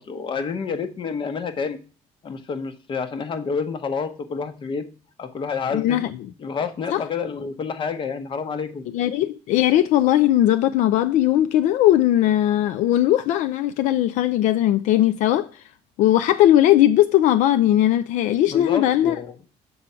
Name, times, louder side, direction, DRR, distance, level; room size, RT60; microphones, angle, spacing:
voice 1, 0.0-1.8 2.2-4.9 5.2-6.0 6.4-8.9 18.5-19.3, left 5 dB, 40° left, 0.9 m, -29 dB
voice 2, 5.7-6.1 6.9-7.0 8.9-15.6 16.0-19.2, left 13 dB, 75° left, 0.4 m, -18 dB
6.9 x 3.8 x 5.6 m
cardioid pair, 120°, 13 cm